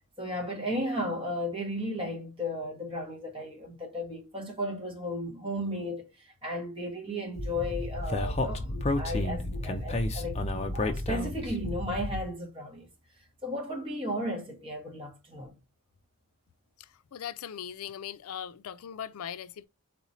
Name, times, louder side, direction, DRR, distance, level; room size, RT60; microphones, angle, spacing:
voice 1, 0.2-12.9 13.4-15.6, equal, 25° right, 1.3 m, -35 dB
Speech, 7.4-12.3, left 1 dB, 30° left, 0.5 m, -31 dB
voice 2, 17.1-19.7, left 9 dB, 80° left, 0.4 m, -39 dB
4.2 x 4.0 x 3.0 m
head